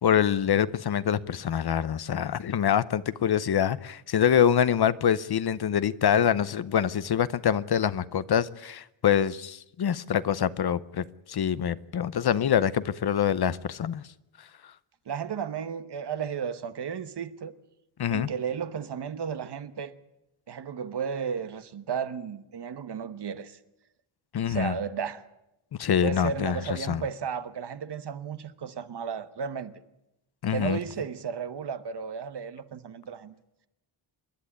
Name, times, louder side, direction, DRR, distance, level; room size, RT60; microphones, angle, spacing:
voice 1, 0.0-14.0 18.0-18.3 24.3-24.7 25.8-26.6 26.9-27.0 30.4-30.8, left 9 dB, 50° left, 0.7 m, -25 dB
voice 2, 15.1-17.5 18.1-19.9 20.5-23.6 24.5-25.2 26.0-29.7 30.5-33.3, right 7 dB, 50° right, 1.2 m, -34 dB
27.0 x 11.0 x 10.0 m
wide cardioid pair, 175°, 50 cm